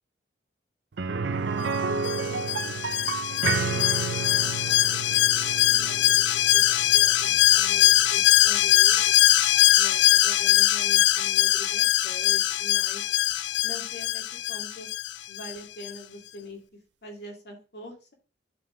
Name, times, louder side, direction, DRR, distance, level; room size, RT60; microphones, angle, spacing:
sound 1, 1.0-10.7 11.1-11.2 13.6-13.7, right 5 dB, 85° right, 0.6 m, -32 dB
voice 1, 1.2-9.2 9.8-13.1 13.6-14.9 15.3-16.6 17.0-18.1, left 1 dB, 65° left, 0 dB, 2.5 m, -44 dB
Alarm, 2.0-15.5 15.8-15.9, left 15 dB, 90° left, 0.4 m, -22 dB
11.5 x 4.3 x 3.3 m, 0.31 s
head